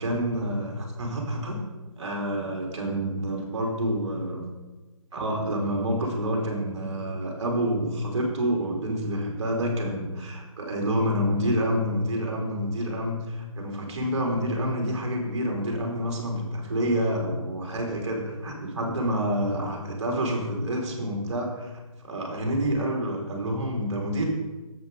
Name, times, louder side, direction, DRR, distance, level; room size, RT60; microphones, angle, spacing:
voice 1, 0.0-1.6 2.0-4.4 5.1-21.7 22.0-24.3, equal, 55° right, 0 dB, 2.6 m, -28 dB
7.8 x 6.4 x 5.1 m, 1.2 s
figure-of-eight pair, 155°, 18 cm